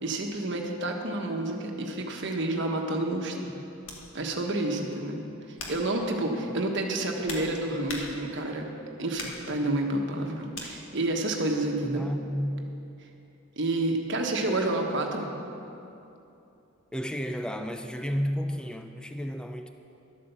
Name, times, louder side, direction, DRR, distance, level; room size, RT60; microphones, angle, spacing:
voice 1, 0.0-3.6 4.1-5.2 5.7-8.6 9.0-12.0 13.6-15.3, right 2 dB, 55° right, 2 dB, 1.3 m, -29 dB
sound 1, 3.8-4.1 4.7-5.0 5.6-5.9 6.8-8.5 9.2-9.5 10.5-10.7, left 2 dB, 60° left, 1.8 m, -40 dB
voice 2, 11.8-12.7 16.9-19.7, equal, 5° left, 6 dB, 0.3 m, -32 dB
12.0 x 8.5 x 6.9 m, 2.8 s
head